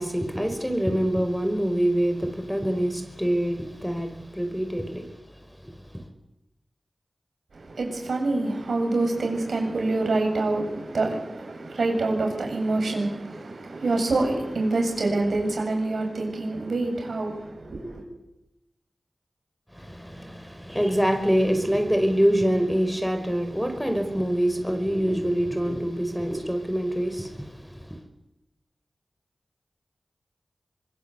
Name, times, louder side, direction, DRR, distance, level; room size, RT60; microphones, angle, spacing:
voice 1, 0.0-6.0 19.7-28.0, equal, ahead, 5.1 m, -25 dB
voice 2, 7.5-18.0, right 2 dB, 85° right, 8.0 m, -26 dB
24.5 x 22.0 x 8.3 m
cardioid pair, 45°, 0 cm